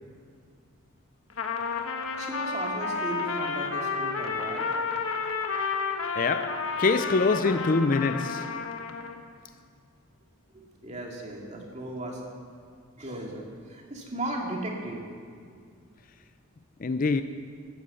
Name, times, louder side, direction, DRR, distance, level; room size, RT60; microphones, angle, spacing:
Trumpet, 1.3-9.2, left 4 dB, 75° left, 1.2 m, -31 dB
voice 1, 2.2-4.7 10.5-12.2 13.0-15.1, right 1 dB, 30° right, 2.3 m, -36 dB
voice 2, 6.2-8.5 16.8-17.2, left 4 dB, 40° left, 0.4 m, -25 dB
13.0 x 11.5 x 8.2 m
head